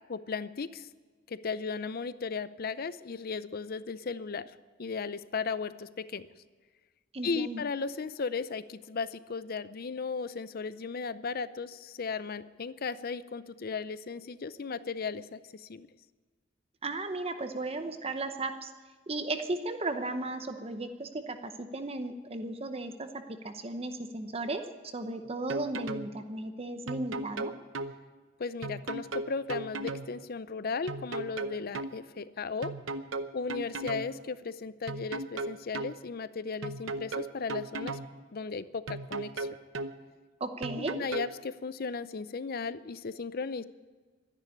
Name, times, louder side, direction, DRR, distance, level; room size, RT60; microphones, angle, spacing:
voice 1, 0.1-0.9 1.3-4.5 4.8-6.3 7.2-15.9 28.4-32.7 33.3-38.0 38.3-39.5 40.8-43.6, left 4 dB, 50° left, 15 dB, 0.6 m, -36 dB
voice 2, 7.1-7.6 16.8-18.7 19.1-23.1 23.4-24.6 24.9-27.5 40.4-41.0, right 2 dB, 30° right, 7 dB, 0.8 m, -35 dB
sound 1, 25.2-26.1 26.9-27.9 28.6-30.1 30.9-31.9 32.6-34.1 34.9-35.9 36.6-38.1 38.9-39.9 40.6-41.3, right 2 dB, 85° right, 0.8 m, -36 dB
12.5 x 11.0 x 9.9 m, 1.4 s
head